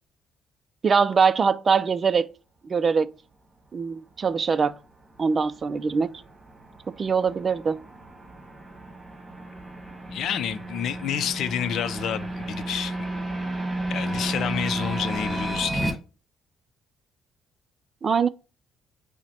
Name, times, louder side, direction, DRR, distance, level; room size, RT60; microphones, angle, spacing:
voice 1, 0.8-2.3 2.6-3.1 3.7-4.8 5.2-6.2 6.9-7.8 18.0-18.3, right 5 dB, 40° right, 0.4 m, -22 dB
sound 1, 4.4-15.9, right 1 dB, 20° right, 1.4 m, -33 dB
voice 2, 10.1-13.0 13.9-16.0, left 9 dB, 70° left, 0.5 m, -29 dB
5.7 x 2.2 x 4.2 m
cardioid pair, 105°, 0 cm